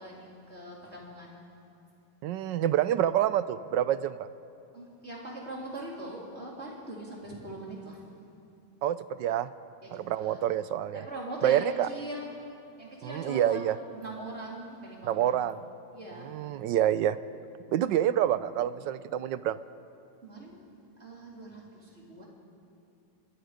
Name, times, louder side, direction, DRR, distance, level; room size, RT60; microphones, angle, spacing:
voice 1, 0.0-1.4 4.7-8.1 9.8-10.4 10.9-12.3 12.8-13.6 13.9-15.4 15.9-16.4 20.2-20.6 21.0-22.3, right 1 dB, 35° right, -3 dB, 3.9 m, -41 dB
voice 2, 2.2-4.3 8.8-9.5 9.9-11.1 11.4-11.9 13.0-13.8 15.0-15.6 16.2-17.2 17.7-19.6, right 11 dB, 80° right, 14 dB, 1.3 m, -27 dB
26.0 x 21.0 x 5.1 m, 2.7 s
omnidirectional pair, 2.0 m